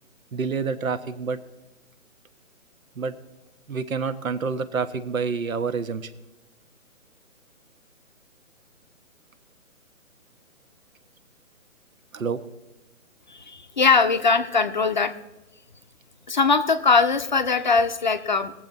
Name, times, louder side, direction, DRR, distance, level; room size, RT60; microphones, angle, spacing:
voice 1, 0.3-1.4 3.0-3.1 3.7-6.1 12.1-12.4, right 5 dB, 80° right, 12 dB, 1.3 m, -28 dB
voice 2, 13.3-15.1 16.3-18.5, left 4 dB, 35° left, 8 dB, 0.6 m, -21 dB
20.5 x 7.6 x 4.0 m, 1.0 s
hypercardioid pair, 165°, 40 cm